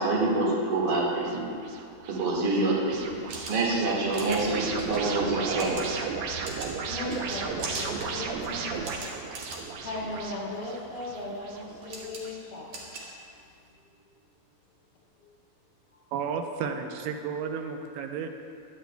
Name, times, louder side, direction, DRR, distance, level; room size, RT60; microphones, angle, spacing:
voice 1, 0.0-1.5 2.0-3.1 3.5-6.0, right 2 dB, 40° right, -4 dB, 2.0 m, -26 dB
sound 1, 0.9-12.4, right 5 dB, 75° right, 1.6 m, -36 dB
sound 2, 3.1-13.7, right 2 dB, 55° right, 2.5 m, -42 dB
voice 2, 6.9-8.8 9.8-12.8 15.9-16.0, left 2 dB, 75° left, -7 dB, 3.5 m, -37 dB
voice 3, 16.1-18.3, right 6 dB, 90° right, 5 dB, 2.4 m, -32 dB
17.5 x 11.0 x 2.3 m, 2.4 s
omnidirectional pair, 3.9 m